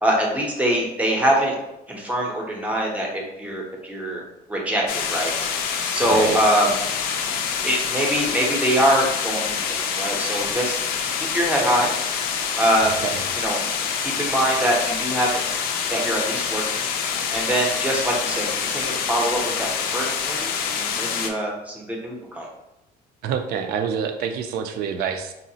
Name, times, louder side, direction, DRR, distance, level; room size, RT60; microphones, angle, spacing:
voice 1, 0.0-1.5 1.9-4.2 4.5-5.3 5.9-6.8 7.6-10.8 11.3-11.9 12.6-12.9 13.4-13.6 14.0-15.4 15.9-16.8 17.3-19.7 19.9-22.5, right 1 dB, 10° right, -1 dB, 0.6 m, -23 dB
sound 1, 4.9-21.3, left 6 dB, 70° left, 0.4 m, -26 dB
voice 2, 6.0-6.4 13.0-13.2 23.2-25.3, right 7 dB, 70° right, 7 dB, 0.4 m, -27 dB
3.8 x 2.0 x 2.7 m, 0.89 s
cardioid pair, 140°, 17 cm